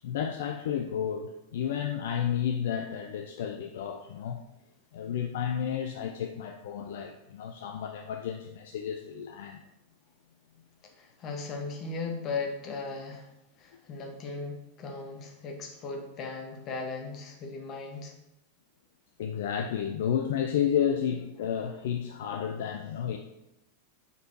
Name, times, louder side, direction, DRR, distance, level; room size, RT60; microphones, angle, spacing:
voice 1, 0.0-4.4 4.9-9.7 19.2-23.2, left 8 dB, 55° left, 5 dB, 0.4 m, -31 dB
voice 2, 10.8-13.3 13.6-18.1, left 4 dB, 35° left, 3 dB, 1.2 m, -37 dB
6.7 x 4.3 x 4.7 m, 0.89 s
figure-of-eight pair, 90°, 0 cm